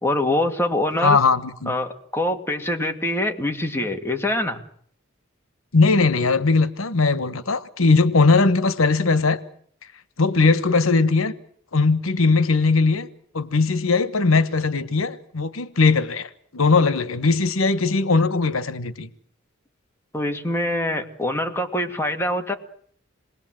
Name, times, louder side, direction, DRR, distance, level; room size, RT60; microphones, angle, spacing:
voice 1, 0.0-1.2 1.7-4.6 20.1-22.5, left 1 dB, 10° left, 2.2 m, -24 dB
voice 2, 1.0-1.7 5.7-9.4 10.2-11.3 11.7-13.1 13.3-19.1, left 3 dB, 90° left, 1.3 m, -19 dB
27.5 x 21.0 x 7.7 m
head